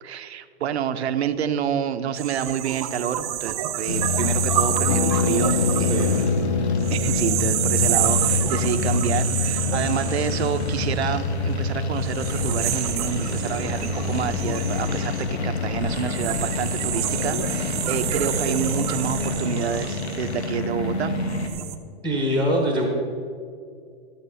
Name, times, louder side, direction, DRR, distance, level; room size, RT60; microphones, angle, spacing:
voice 1, 0.0-6.3 6.9-21.1, right 8 dB, 80° right, 8 dB, 0.9 m, -28 dB
sound 1, 2.1-11.4 12.0-20.7 21.2-21.7, right 11 dB, 35° right, 0.7 m, -28 dB
sound 2, 3.9-21.5, left 3 dB, 90° left, 1.8 m, -27 dB
Harp, 4.9-14.5 14.7-14.8 15.0-15.3, left 6 dB, 35° left, 0.5 m, -30 dB
voice 2, 22.0-22.9, equal, 5° left, -1 dB, 1.0 m, -23 dB
13.5 x 7.3 x 5.6 m, 2.3 s
hypercardioid pair, 155°, 32 cm